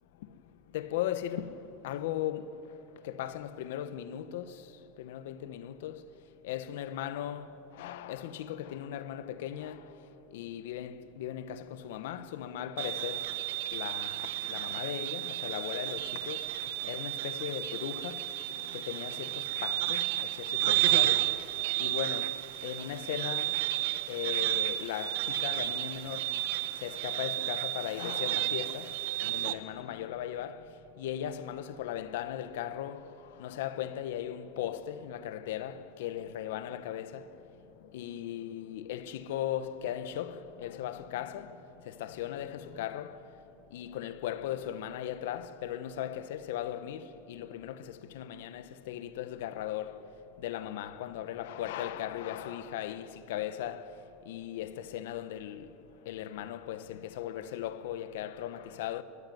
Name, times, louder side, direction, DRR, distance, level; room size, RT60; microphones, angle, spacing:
voice 1, 0.7-1.5 1.8-2.5 3.0-4.6 5.0-6.0 6.4-9.8 10.3-13.3 13.7-16.5 16.8-18.2 18.6-21.3 21.8-22.3 22.6-23.5 24.1-26.3 26.8-28.9 29.2-30.6 31.0-33.1 33.4-37.2 37.9-41.6 41.8-43.2 43.7-50.0 50.4-53.9 54.3-55.7 56.1-59.0, left 11 dB, 80° left, 1.2 m, -37 dB
sound 1, 12.8-29.5, right 16 dB, 85° right, 1.3 m, -32 dB
22.0 x 20.5 x 9.5 m
supercardioid pair, 165°, 0 cm